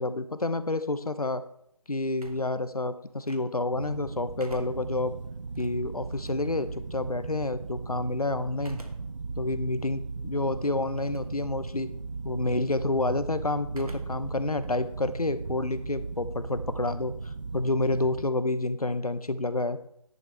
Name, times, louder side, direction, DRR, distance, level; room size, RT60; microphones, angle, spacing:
voice 1, 0.0-1.4 1.9-5.1 5.6-8.8 9.4-11.9 12.2-19.8, left 2 dB, 80° left, 13 dB, 1.0 m, -29 dB
sound 1, 2.2-3.8 4.2-6.8 8.6-9.3 9.8-9.9 10.9-11.4 11.7-12.1 13.7-14.3 14.6-16.0, right 1 dB, 75° right, 1.9 m, -48 dB
sound 2, 3.7-18.3, right 4 dB, 55° right, 0.5 m, -37 dB
10.5 x 9.2 x 3.5 m, 0.73 s
figure-of-eight pair, 155°, 19 cm